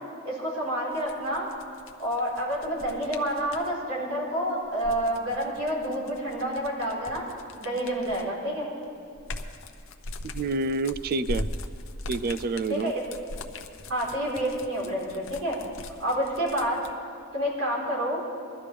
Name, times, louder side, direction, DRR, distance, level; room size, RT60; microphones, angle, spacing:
voice 1, 0.2-1.5 2.0-7.2 7.6-8.7 12.7-13.0 13.9-15.6 16.0-16.8 17.3-18.2, equal, 70° right, -5 dB, 3.9 m, -28 dB
sound 1, 0.9-3.7 4.6-8.4 8.8-16.9, left 2 dB, 65° left, 0.8 m, -40 dB
voice 2, 10.2-11.4 12.1-12.9, right 3 dB, 45° right, 13 dB, 0.3 m, -28 dB
21.5 x 12.5 x 3.4 m, 2.4 s
head